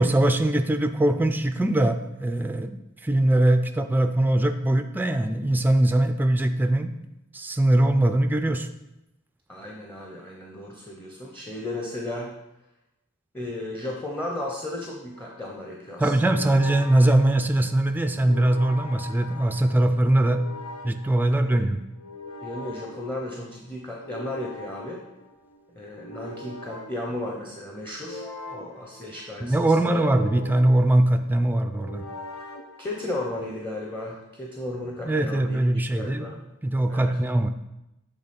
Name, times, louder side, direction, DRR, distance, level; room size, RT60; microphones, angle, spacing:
voice 1, 0.0-6.9 7.3-8.7 16.0-20.4 20.8-21.8 29.4-32.0 35.1-36.3 36.6-37.5, right 1 dB, 10° right, 8 dB, 0.4 m, -21 dB
voice 2, 9.5-12.3 13.3-16.1 21.4-21.7 22.4-25.1 25.8-28.2 28.5-30.0 32.8-36.4 36.9-37.1, left 1 dB, 10° left, -2 dB, 0.8 m, -34 dB
sound 1, 15.1-33.5, left 2 dB, 85° left, 1.0 m, -43 dB
8.1 x 3.5 x 5.2 m, 0.92 s
head